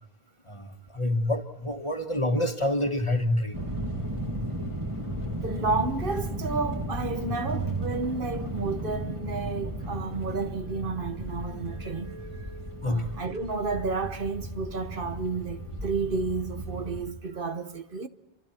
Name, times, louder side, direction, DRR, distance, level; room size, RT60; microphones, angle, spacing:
voice 1, 0.5-3.6 12.8-13.1, left 1 dB, 30° left, 1.6 m, -27 dB
sound 1, 3.5-17.1, right 1 dB, 30° right, 2.8 m, -35 dB
voice 2, 5.4-12.5 12.8-18.1, right 4 dB, 60° right, 1.3 m, -31 dB
30.0 x 25.0 x 4.4 m
omnidirectional pair, 1.0 m